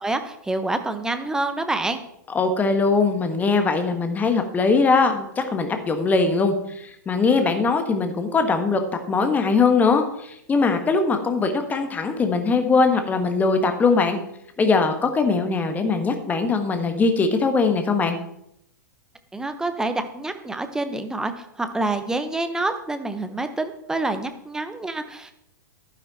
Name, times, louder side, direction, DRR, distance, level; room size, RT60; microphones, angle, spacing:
voice 1, 0.0-2.0 19.3-21.3 21.6-25.3, right 2 dB, 5° right, 8 dB, 1.0 m, -27 dB
voice 2, 2.3-8.8 9.1-14.2 14.6-18.2, left 4 dB, 15° left, 7 dB, 1.5 m, -21 dB
11.5 x 9.7 x 4.2 m, 0.76 s
figure-of-eight pair, 105°, 10 cm